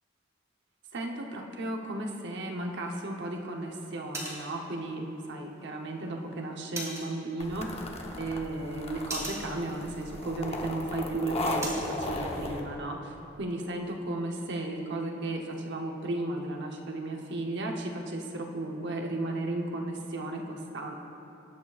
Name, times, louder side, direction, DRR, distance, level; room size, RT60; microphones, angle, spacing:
voice 1, 0.9-7.8 8.2-21.0, right 2 dB, 60° right, 1 dB, 0.9 m, -34 dB
sound 1, 2.5-11.9, right 1 dB, 15° right, 2.1 m, -44 dB
sound 2, 7.4-12.6, left 2 dB, 30° left, 0.8 m, -36 dB
19.0 x 8.5 x 2.4 m, 2.9 s
head